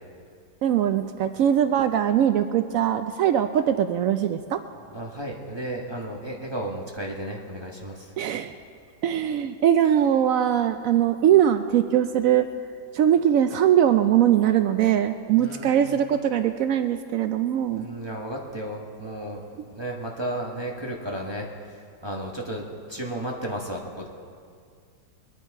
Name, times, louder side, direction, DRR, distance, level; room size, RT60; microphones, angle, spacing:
voice 1, 0.6-4.6 8.2-8.5 9.0-12.5 12.9-17.9, right 10 dB, 85° right, 9 dB, 0.7 m, -21 dB
voice 2, 4.9-8.1 15.4-16.0 17.7-21.5 22.0-24.1, right 1 dB, 15° right, -2 dB, 1.1 m, -33 dB
22.5 x 9.9 x 4.7 m, 2.2 s
omnidirectional pair, 2.0 m